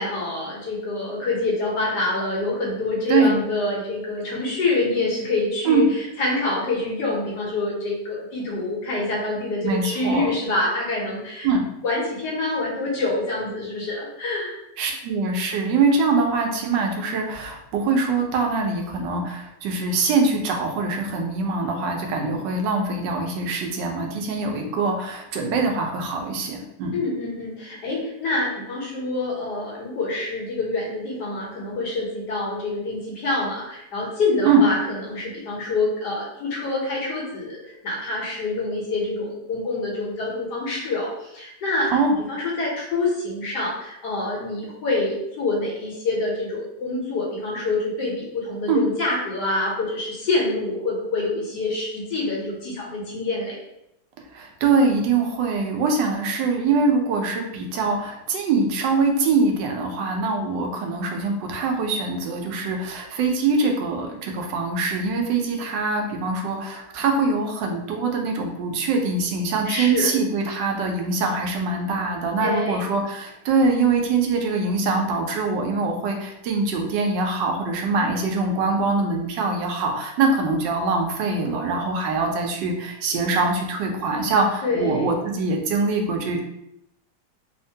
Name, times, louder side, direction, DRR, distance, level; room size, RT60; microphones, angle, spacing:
voice 1, 0.0-11.5 11.8-14.6 26.9-42.0 42.3-53.6 69.6-70.1 72.4-72.9 84.6-85.1, left 2 dB, 70° left, -4 dB, 1.4 m, -26 dB
voice 2, 9.6-10.3 11.4-11.6 14.8-27.0 34.5-34.6 41.9-42.1 48.7-48.9 54.3-86.4, right 3 dB, 90° right, 2 dB, 1.3 m, -23 dB
3.4 x 2.1 x 2.7 m, 0.81 s
omnidirectional pair, 1.9 m